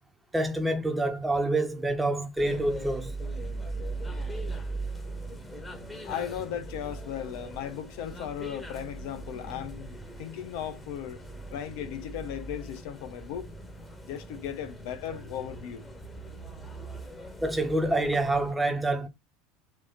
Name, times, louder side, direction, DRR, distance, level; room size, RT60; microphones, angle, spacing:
voice 1, 0.3-3.1 17.4-19.1, right 2 dB, 10° right, 1.3 m, -27 dB
sound 1, 2.4-18.5, right 2 dB, 10° left, 1.5 m, -40 dB
voice 2, 6.0-11.2 11.5-13.5 14.0-15.8, left 9 dB, 65° left, 0.7 m, -36 dB
4.4 x 2.9 x 4.1 m
hypercardioid pair, 75°, 0 cm